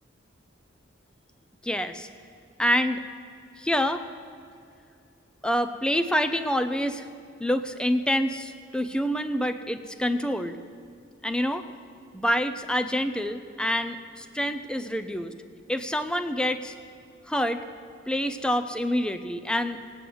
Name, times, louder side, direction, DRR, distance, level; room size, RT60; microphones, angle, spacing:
voice 1, 1.6-2.1 2.6-3.0 3.6-4.0 5.4-7.1 7.4-10.6 11.2-11.7 12.1-15.3 15.7-16.7 17.3-17.6 18.1-20.0, equal, 5° left, 9 dB, 0.5 m, -27 dB
17.5 x 9.1 x 7.8 m, 2.5 s
head